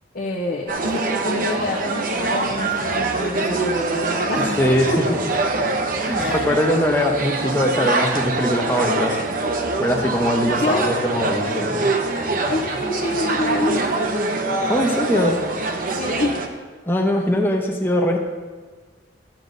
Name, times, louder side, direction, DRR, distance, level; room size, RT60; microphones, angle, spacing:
voice 1, 0.1-5.0 6.1-6.6 10.4-11.0 12.5-14.4 15.9-16.4, left 2 dB, 55° left, -3 dB, 0.8 m, -27 dB
sound 1, 0.7-16.5, right 3 dB, 50° right, 0.7 m, -24 dB
voice 2, 4.4-4.9 6.0-9.2 9.8-11.9 14.7-15.4 16.9-18.2, left 1 dB, 10° left, 1 dB, 0.8 m, -21 dB
12.0 x 7.6 x 2.7 m, 1.4 s
head